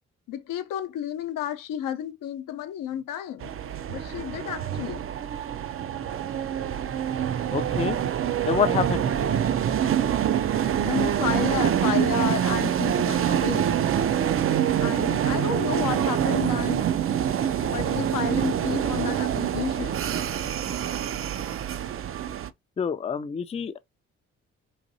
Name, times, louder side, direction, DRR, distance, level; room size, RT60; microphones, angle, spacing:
voice 1, 0.3-3.5 3.9-5.0 10.8-13.8 14.8-16.8 17.6-20.0 20.6-21.6, left 9 dB, 70° left, 0.7 m, -32 dB
sound 1, 3.4-22.5, right 9 dB, 40° right, 0.4 m, -25 dB
voice 2, 7.5-8.0 8.4-9.0 9.8-9.9 22.8-23.8, left 7 dB, 20° left, 0.4 m, -27 dB
4.1 x 2.6 x 2.7 m
supercardioid pair, 45°, 34 cm